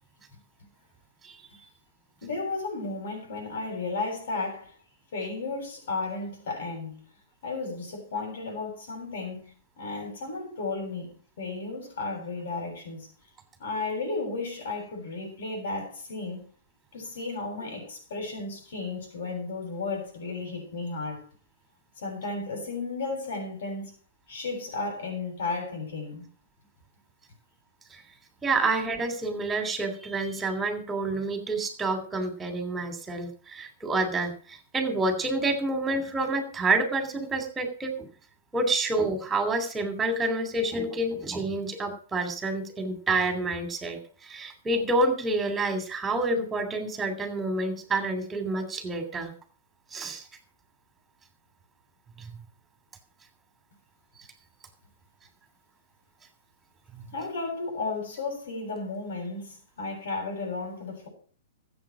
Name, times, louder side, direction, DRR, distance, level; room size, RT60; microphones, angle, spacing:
voice 1, 2.2-4.8 5.1-7.0 7.4-11.1 11.4-13.1 13.6-16.5 16.9-21.2 22.0-23.9 24.3-26.3 57.1-61.1, left 3 dB, 65° left, 7.4 m, -34 dB
voice 2, 28.4-38.1 38.5-49.3 49.9-50.2 52.2-52.3 56.9-57.1, right 2 dB, 10° right, 3.1 m, -28 dB
14.0 x 8.2 x 6.1 m
hypercardioid pair, 130°, 0 cm